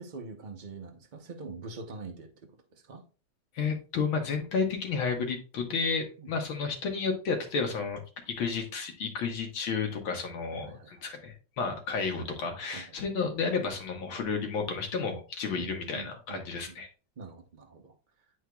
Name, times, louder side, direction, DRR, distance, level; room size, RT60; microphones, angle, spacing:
voice 1, 0.0-3.1 6.2-6.4 10.5-11.0 12.7-13.0 15.5-16.8 17.2-17.9, right 3 dB, 65° right, 0.4 m, -44 dB
voice 2, 3.6-8.0 8.3-16.9, left 5 dB, 90° left, 2.0 m, -32 dB
9.4 x 4.5 x 2.3 m
omnidirectional pair, 2.2 m